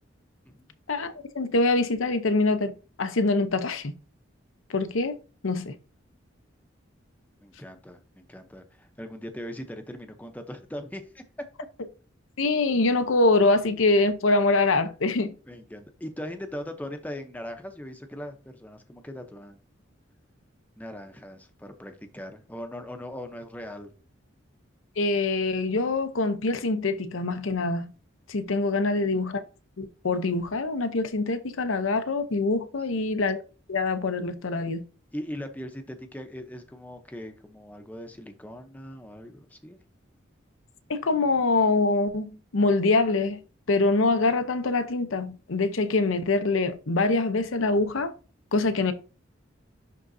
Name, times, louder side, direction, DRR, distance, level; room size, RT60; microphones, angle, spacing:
voice 1, 0.9-3.9 4.7-5.1 5.4-5.7 12.4-15.3 25.0-27.9 28.3-29.4 29.8-33.4 33.7-34.8 40.9-43.4 43.7-48.1 48.5-48.9, left 3 dB, 85° left, 0.8 m, -24 dB
voice 2, 7.4-11.2 15.5-19.6 20.8-23.9 28.9-29.1 32.9-33.1 35.1-39.8, left 1 dB, 10° left, 0.7 m, -40 dB
11.0 x 3.7 x 2.7 m
head